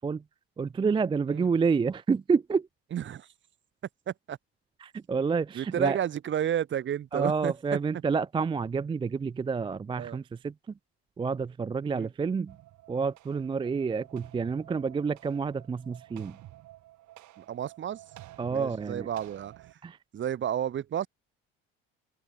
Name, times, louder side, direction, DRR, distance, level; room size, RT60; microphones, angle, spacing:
voice 1, 0.6-2.7 4.8-6.0 7.1-10.5 11.2-12.5 12.9-16.4 18.4-19.1 19.8-20.0, right 5 dB, 15° right, 0.4 m, -29 dB
voice 2, 2.9-3.3 4.1-4.4 5.5-7.5 10.0-10.2 11.9-12.1 17.4-18.0 18.5-19.5 20.1-21.1, right 10 dB, 40° right, 0.7 m, -31 dB
sound 1, 12.5-19.7, right 15 dB, 65° right, 5.9 m, -51 dB
supercardioid pair, 80°, 31 cm